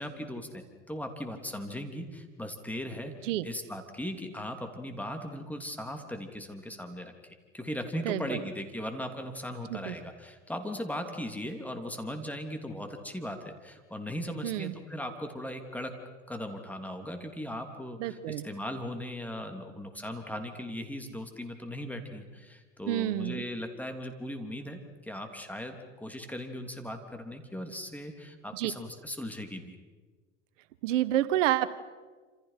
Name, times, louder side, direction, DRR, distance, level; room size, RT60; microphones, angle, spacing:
voice 1, 0.0-3.1 3.4-15.9 16.3-18.2 18.4-29.8, left 1 dB, 5° left, 5 dB, 3.3 m, -38 dB
voice 2, 8.0-8.4 9.7-9.9 14.4-14.7 18.0-18.4 22.9-23.4 28.5-28.7 30.8-31.7, right 13 dB, 70° right, 14 dB, 1.3 m, -29 dB
28.0 x 27.5 x 5.9 m, 1.4 s
hypercardioid pair, 110°, 38 cm